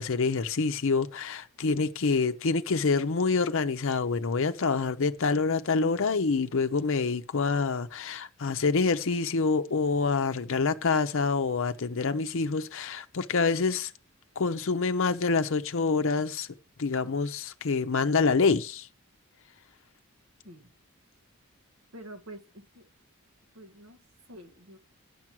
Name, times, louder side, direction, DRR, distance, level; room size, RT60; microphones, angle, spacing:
voice 1, 0.0-13.9 14.4-16.5 16.8-18.9, left 4 dB, 65° left, 0.6 m, -26 dB
voice 2, 21.9-22.8 23.5-24.0 24.3-24.8, right 1 dB, 65° right, 1.5 m, -47 dB
10.0 x 6.1 x 6.0 m
head